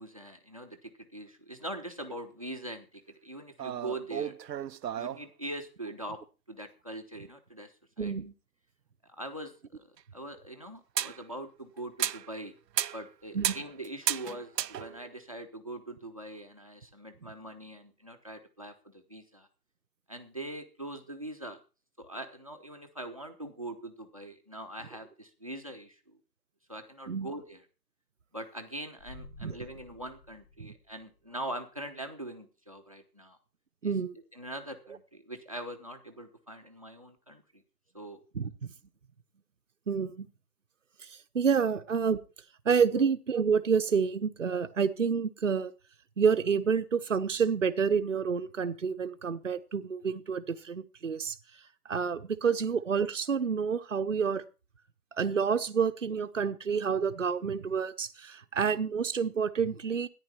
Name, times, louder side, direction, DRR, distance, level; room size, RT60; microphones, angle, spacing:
voice 1, 0.0-4.4 4.9-6.2 6.5-7.7 8.0-8.1 9.2-9.8 10.1-12.5 12.9-19.5 20.1-21.6 22.0-26.2 26.7-27.6 28.3-33.4 33.8-33.9 34.3-37.6 37.9-38.2 42.9-43.0, right 1 dB, 20° right, 8 dB, 0.8 m, -42 dB
sound 1, 3.6-5.2 10.0-10.1 10.9-11.2 11.8-12.3 12.7-13.1 13.4-15.2, right 10 dB, 80° right, 0.6 m, -33 dB
voice 2, 8.0-8.3 13.3-13.5 27.1-27.3 29.4-29.6 30.6-30.7 33.8-34.1 38.3-38.7 39.9-40.3 41.3-42.2 42.6-45.7 46.2-51.4 51.9-54.4 55.2-60.1, right 6 dB, 50° right, 8 dB, 0.9 m, -28 dB
sound 2, 29.0-31.2, left 2 dB, 10° left, 1.6 m, -51 dB
14.0 x 10.0 x 4.3 m, 0.32 s
hypercardioid pair, 180°, 49 cm